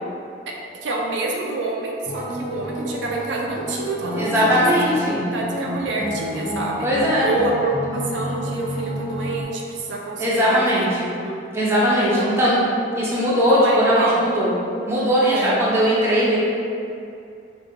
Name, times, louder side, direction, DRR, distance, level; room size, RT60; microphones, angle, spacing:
voice 1, 0.8-4.5 5.3-6.9 7.2-11.3 12.0-12.3 13.5-14.2 15.3-15.6, right 2 dB, 75° right, -1 dB, 0.4 m, -27 dB
sound 1, 2.1-9.4, equal, 50° left, 0.5 m, -30 dB
voice 2, 4.2-5.2 6.8-7.3 10.2-10.9 11.5-12.6 13.0-14.5 14.9-16.4, equal, 15° right, -7 dB, 0.6 m, -19 dB
3.8 x 2.6 x 2.6 m, 2.6 s
head